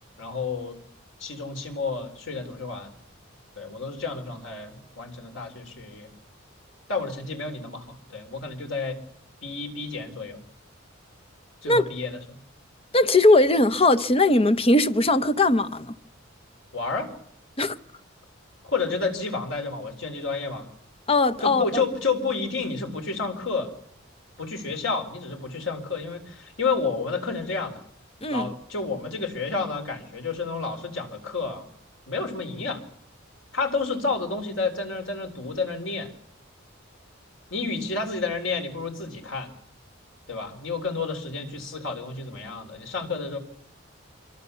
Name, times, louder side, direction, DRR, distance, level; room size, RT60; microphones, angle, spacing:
voice 1, 0.2-0.8 1.2-2.9 3.6-6.1 6.9-9.0 9.4-10.4 11.6-12.4 16.7-17.1 18.6-20.7 21.4-23.7 24.4-27.8 28.3-31.7 32.1-32.8 33.5-36.1 37.5-39.5 40.3-43.4, left 4 dB, 70° left, 4.2 m, -30 dB
voice 2, 12.9-15.9 17.6-17.8 21.1-21.7 28.2-28.5, left 2 dB, 30° left, 1.0 m, -19 dB
25.5 x 24.0 x 7.1 m
head